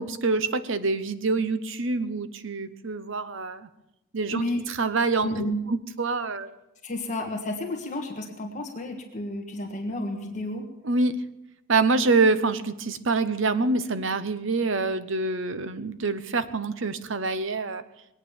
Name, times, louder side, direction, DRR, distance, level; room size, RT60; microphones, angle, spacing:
voice 1, 0.0-3.7 4.1-4.4 4.8-6.5 10.8-11.2 11.7-17.8, right 3 dB, 60° right, 13 dB, 0.9 m, -26 dB
voice 2, 4.3-4.6 5.2-5.6 6.8-10.7, left 1 dB, 35° left, 2 dB, 1.6 m, -31 dB
21.0 x 9.1 x 7.1 m, 0.90 s
head